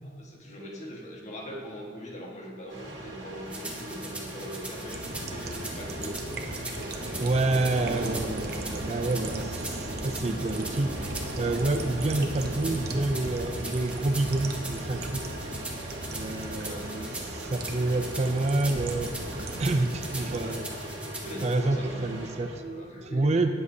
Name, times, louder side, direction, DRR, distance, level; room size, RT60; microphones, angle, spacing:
voice 1, 0.0-7.6 16.6-16.9 21.2-22.3 22.7-23.5, equal, 40° left, -2 dB, 1.5 m, -42 dB
sound 1, 2.7-22.6, right 1 dB, 80° right, 2.0 m, -40 dB
sound 2, 3.5-21.5, right 2 dB, 5° right, 1.1 m, -42 dB
sound 3, 4.9-20.6, right 2 dB, 60° right, 0.9 m, -37 dB
voice 2, 7.2-15.4 15.8-20.7 21.4-23.5, right 2 dB, 35° right, 7 dB, 0.5 m, -28 dB
18.5 x 7.5 x 2.8 m, 2.2 s
head